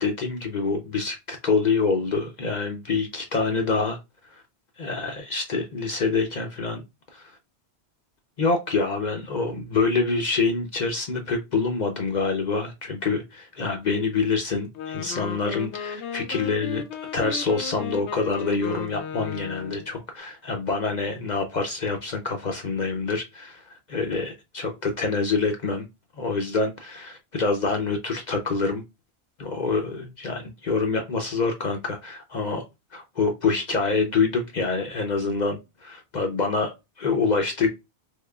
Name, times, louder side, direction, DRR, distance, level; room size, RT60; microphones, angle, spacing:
voice 1, 0.0-4.0 4.3-4.4 4.8-6.8 7.1-7.3 8.4-16.8 17.1-25.9 26.2-28.8 29.4-32.6 32.9-37.7, left 4 dB, 50° left, 0.6 m, -26 dB
Wind instrument woodwind instrument, 14.6-19.9, left 6 dB, 90° left, 0.9 m, -35 dB
3.6 x 3.1 x 2.2 m
omnidirectional pair, 1.1 m